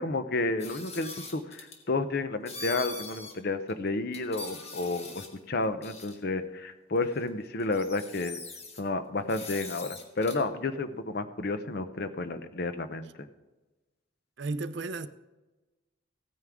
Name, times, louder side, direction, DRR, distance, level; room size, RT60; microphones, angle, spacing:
voice 1, 0.0-8.4 8.8-13.1, left 3 dB, 50° left, 0.7 m, -31 dB
sound 1, 0.6-1.8 2.5-3.3 3.7-3.8 4.1-5.4 5.8-6.2 7.2-7.3 7.6-8.8 9.3-10.4, left 3 dB, 30° left, 1.3 m, -42 dB
voice 2, 14.4-15.1, right 3 dB, 55° right, 0.5 m, -33 dB
16.0 x 9.4 x 3.6 m
head